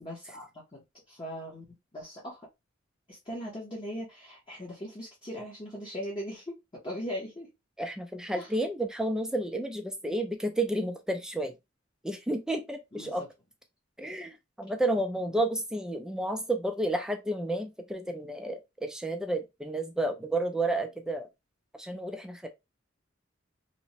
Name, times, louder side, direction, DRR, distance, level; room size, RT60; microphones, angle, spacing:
voice 1, 0.0-0.8 1.1-1.6 1.9-2.5 3.1-6.4 6.8-7.5 8.3-8.5 12.9-13.3, equal, 25° left, 0.7 m, -39 dB
voice 2, 7.8-11.5 12.0-13.2 14.0-21.3 21.8-22.5, right 1 dB, 5° right, 0.3 m, -31 dB
2.9 x 2.0 x 2.7 m
head